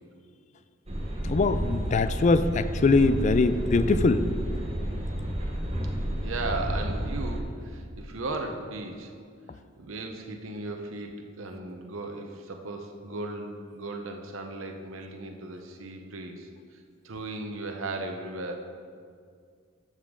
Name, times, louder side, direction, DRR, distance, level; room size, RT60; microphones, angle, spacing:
sound 1, 0.9-7.4, equal, 30° right, 1.1 m, -31 dB
voice 1, 1.2-4.2, left 3 dB, 35° left, 12 dB, 0.4 m, -22 dB
voice 2, 6.2-9.1 9.8-18.6, right 2 dB, 90° right, 4 dB, 0.8 m, -36 dB
13.0 x 6.6 x 3.7 m, 2.2 s
head